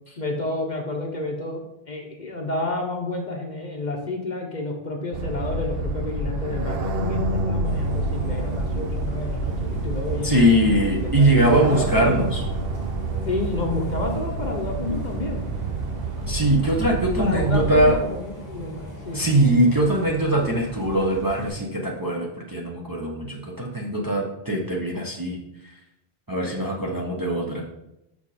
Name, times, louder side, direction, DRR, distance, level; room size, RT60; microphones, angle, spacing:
voice 1, 0.2-12.3 13.2-15.5 17.2-19.2, left 2 dB, 45° left, 2 dB, 1.0 m, -30 dB
sound 1, 5.1-18.0, right 2 dB, 60° right, 0.9 m, -28 dB
Bus, 7.6-21.5, right 1 dB, 40° right, 2.2 m, -38 dB
voice 2, 10.2-12.4 16.3-17.9 19.1-25.4 26.3-27.6, right 1 dB, 20° right, -2 dB, 0.8 m, -21 dB
6.3 x 4.8 x 4.2 m, 0.88 s
omnidirectional pair, 1.1 m